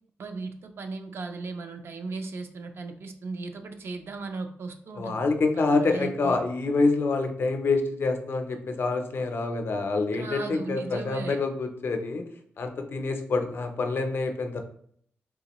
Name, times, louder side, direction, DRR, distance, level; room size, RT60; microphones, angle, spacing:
voice 1, 0.2-5.2 5.5-6.4 10.1-11.4, right 3 dB, 60° right, 6 dB, 0.5 m, -37 dB
voice 2, 5.0-12.2 12.6-14.6, left 3 dB, 55° left, 5 dB, 0.5 m, -26 dB
3.6 x 2.9 x 2.9 m, 0.64 s
cardioid pair, 95°, 4 cm